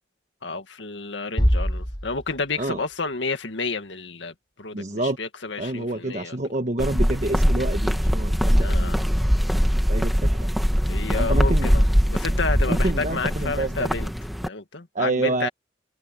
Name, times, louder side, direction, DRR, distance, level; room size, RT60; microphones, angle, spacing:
voice 1, 0.4-6.4 8.6-9.1 10.9-11.8 12.1-14.1 14.4-15.5, left 3 dB, 80° left, 2.0 m, -30 dB
sound 1, 1.4-2.8, equal, 25° left, 4.0 m, -24 dB
voice 2, 4.7-5.2 5.6-8.9 9.9-10.5 11.2-11.7 12.7-13.9 14.9-15.5, right 2 dB, 40° right, 1.3 m, -28 dB
sound 2, 6.8-14.5, equal, ahead, 1.6 m, -22 dB
head